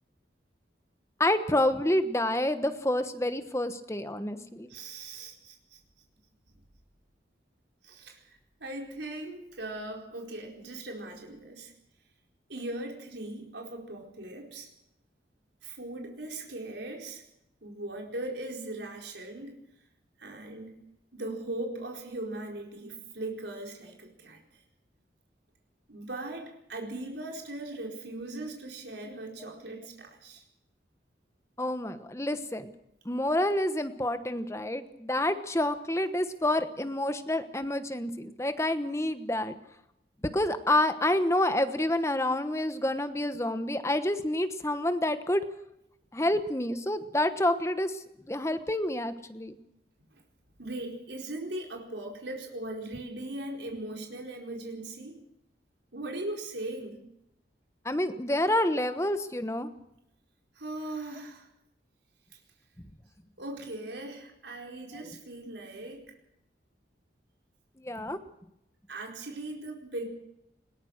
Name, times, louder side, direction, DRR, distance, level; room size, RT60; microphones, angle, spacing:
voice 1, 1.2-4.7 29.4-29.5 31.6-32.7 33.0-39.6 40.2-45.5 46.1-49.6 57.8-59.7 67.8-68.2, left 1 dB, 15° left, 10 dB, 1.2 m, -28 dB
voice 2, 4.7-5.8 7.8-11.7 12.5-14.7 15.6-17.2 17.6-19.6 20.2-20.7 21.1-24.4 25.9-30.4 50.1-50.2 50.6-55.2 55.9-57.0 60.5-61.5 63.4-66.1 68.9-70.0, right 2 dB, 75° right, 1 dB, 4.5 m, -39 dB
21.0 x 19.0 x 6.5 m, 0.83 s
head